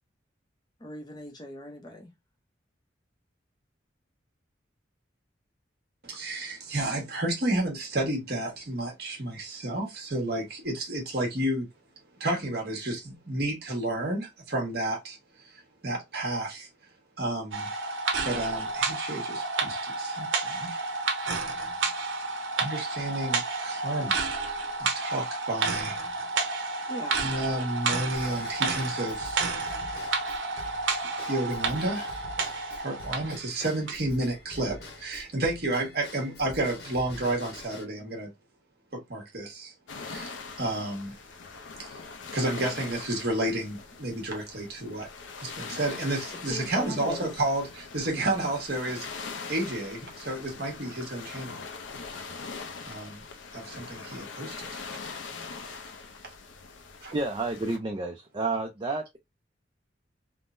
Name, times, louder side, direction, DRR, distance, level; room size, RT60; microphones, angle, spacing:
voice 1, 0.8-2.1 26.9-27.2 46.4-47.3, left 1 dB, 20° left, 0.6 m, -39 dB
voice 2, 6.0-11.7 12.2-15.2 15.4-16.7 17.2-17.7 18.2-20.8 22.6-24.4 24.8-26.0 26.4-26.5 27.2-29.4 31.3-32.2 32.7-38.3 38.9-39.7 40.0-41.2 41.8-42.0 42.3-45.1 45.4-49.2 49.5-51.6 52.8-53.2 53.5-55.0 57.0-57.1, right 1 dB, 55° right, 1.2 m, -31 dB
sound 1, 17.5-33.4 33.9-34.0, right 3 dB, 80° right, 0.7 m, -30 dB
Drum kit / Drum / Bell, 28.1-37.8, left 1 dB, 65° left, 0.9 m, -46 dB
sound 2, 39.9-57.8, left 4 dB, 80° left, 0.5 m, -42 dB
voice 3, 57.1-59.2, right 3 dB, 25° right, 0.3 m, -30 dB
3.6 x 2.0 x 2.5 m
head